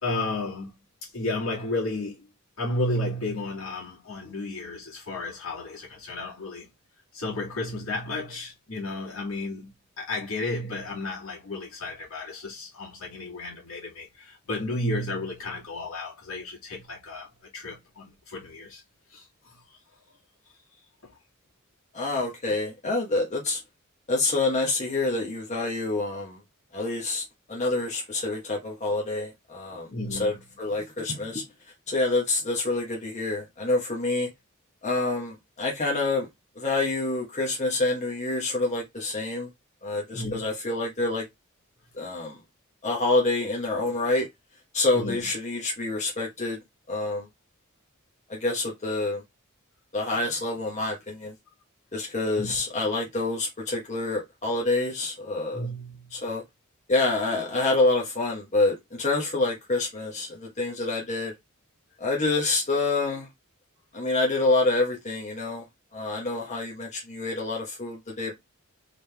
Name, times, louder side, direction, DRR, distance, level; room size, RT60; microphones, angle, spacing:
voice 1, 0.0-0.7 1.0-2.3 2.6-6.7 7.1-18.8 19.1-19.6 21.0-21.1 29.9-30.4 40.1-40.5 44.9-45.3 52.4-52.6 55.5-56.2, left 2 dB, 75° left, 2.2 m, -33 dB
voice 2, 21.9-23.6 24.1-26.4 26.7-27.2 27.5-31.4 31.9-34.3 34.8-36.3 36.5-39.5 39.8-41.3 41.9-42.4 42.8-44.3 44.7-46.6 46.9-47.3 48.3-49.2 49.9-51.3 51.9-55.6 56.1-56.4 56.9-61.3 62.0-63.3 63.9-65.6 65.9-68.4, left 2 dB, 35° left, 1.3 m, -27 dB
3.9 x 3.5 x 3.4 m
head